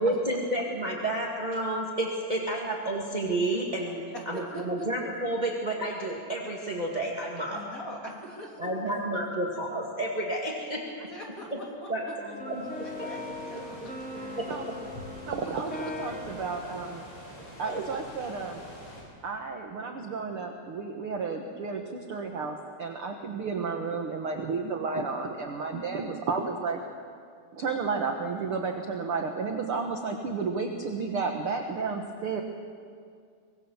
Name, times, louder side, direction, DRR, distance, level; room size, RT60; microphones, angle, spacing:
voice 1, 0.0-4.0 4.2-7.6 8.6-10.9 11.9-12.0 12.4-12.6 13.0-13.1 14.4-14.5 17.6-17.8, right 1 dB, 20° right, -2 dB, 1.1 m, -30 dB
voice 2, 4.1-4.9 7.5-8.7 10.8-13.9 14.2-14.4, equal, 25° left, -2 dB, 3.3 m, -43 dB
sound 1, 12.2-17.8, left 2 dB, 5° left, 2.2 m, -40 dB
sound 2, 12.5-19.0, equal, 40° left, 5.9 m, -46 dB
voice 3, 15.3-17.1 17.6-18.7 19.2-26.8 27.5-32.4, right 4 dB, 65° right, 3 dB, 1.4 m, -32 dB
24.5 x 21.0 x 7.2 m, 2.2 s
omnidirectional pair, 4.4 m